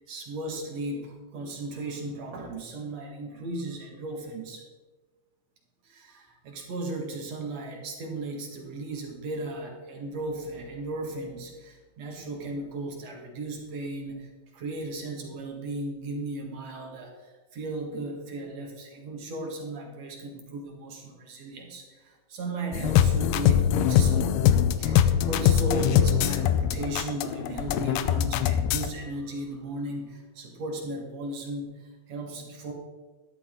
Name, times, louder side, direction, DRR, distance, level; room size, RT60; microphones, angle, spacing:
voice 1, 0.1-4.6 5.8-24.4 24.8-31.7 32.1-32.7, right 2 dB, 50° right, 1 dB, 2.4 m, -36 dB
sound 1, 22.7-28.9, left 10 dB, 90° left, 2.6 m, -22 dB
12.5 x 11.5 x 3.7 m, 1.2 s
omnidirectional pair, 4.5 m